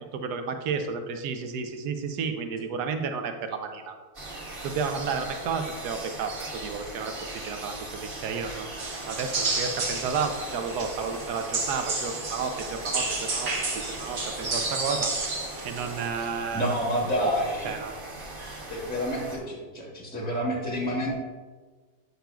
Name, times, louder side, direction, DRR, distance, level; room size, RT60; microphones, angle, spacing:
voice 1, 0.2-3.9 4.6-8.7 9.1-15.1 15.6-16.8 17.2-17.3 17.6-17.9, right 5 dB, 90° right, 6 dB, 1.2 m, -32 dB
sound 1, 4.1-19.4, right 2 dB, 35° right, 1.5 m, -40 dB
sound 2, 8.8-16.1, right 3 dB, 70° right, 1.7 m, -31 dB
voice 2, 16.5-17.8 18.7-21.1, equal, 10° left, -3 dB, 0.7 m, -28 dB
8.1 x 6.0 x 2.3 m, 1.4 s
omnidirectional pair, 1.6 m